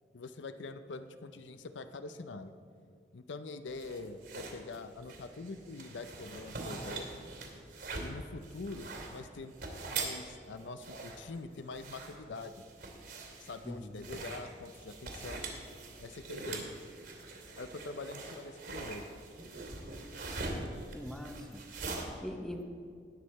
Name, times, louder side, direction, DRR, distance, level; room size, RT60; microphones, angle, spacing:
voice 1, 0.1-2.5 3.1-7.1 8.0-9.5 9.9-12.5 13.4-15.4 16.0-16.7 17.6-19.0, left 3 dB, 75° left, 10 dB, 0.6 m, -44 dB
fabric rustling and sliding, 3.7-22.0, right 3 dB, 65° right, 2.5 m, -43 dB
voice 2, 20.9-21.6 21.9-22.6, left 1 dB, 5° left, 4 dB, 0.7 m, -42 dB
19.0 x 6.5 x 4.2 m, 2.3 s
head